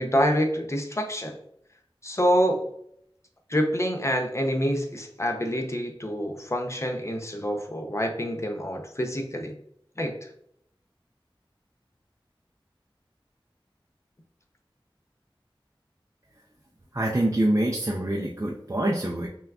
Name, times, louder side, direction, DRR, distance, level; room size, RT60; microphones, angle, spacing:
voice 1, 0.0-1.4 2.0-2.6 3.5-9.5 10.0-10.2, equal, 30° left, 3 dB, 0.6 m, -26 dB
voice 2, 16.9-19.3, right 1 dB, 35° right, -2 dB, 0.5 m, -25 dB
5.7 x 2.4 x 2.3 m, 0.71 s
wide cardioid pair, 45°, 9 cm